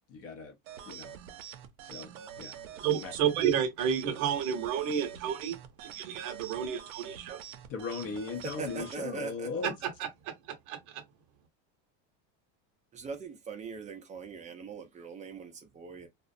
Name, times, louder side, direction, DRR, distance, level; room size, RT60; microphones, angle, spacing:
voice 1, 0.1-0.5 0.9-1.1 1.8-2.1 2.4-2.6 2.9-3.1 7.7-9.7, left 5 dB, 40° left, 0.6 m, -38 dB
sound 1, 0.6-9.0, right 9 dB, 80° right, 0.6 m, -46 dB
voice 2, 2.8-7.4 9.6-11.0, right 8 dB, 50° right, 0.8 m, -31 dB
voice 3, 8.6-9.5 12.9-16.1, right 5 dB, 20° right, 0.4 m, -41 dB
2.3 x 2.1 x 2.5 m
supercardioid pair, 140°, 39 cm